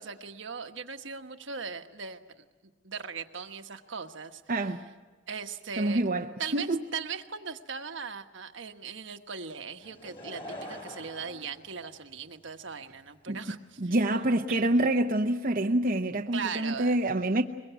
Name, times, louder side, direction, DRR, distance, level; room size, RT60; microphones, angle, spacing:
voice 1, 0.0-2.4 2.8-4.4 5.3-6.1 6.4-13.9 14.5-14.6 16.3-17.0, right 5 dB, 70° right, 1.3 m, -39 dB
voice 2, 4.5-4.8 5.8-6.3 6.5-6.8 13.3-13.4 13.8-17.4, right 1 dB, 45° right, 0.9 m, -26 dB
Laughter / Crowd, 9.8-12.4 13.1-13.2, equal, 30° left, 4.2 m, -44 dB
23.0 x 22.0 x 8.3 m
head